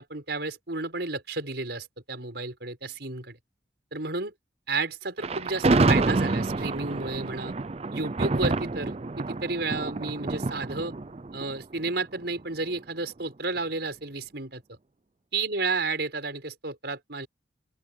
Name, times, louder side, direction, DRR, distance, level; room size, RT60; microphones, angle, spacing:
voice 1, 0.0-3.4 3.9-4.3 4.7-7.5 7.9-10.9 11.3-14.6 15.3-17.3, right 3 dB, 65° right, 5.6 m, -32 dB
Thunder, 5.2-12.4, right 3 dB, 35° right, 0.5 m, -27 dB
open air
head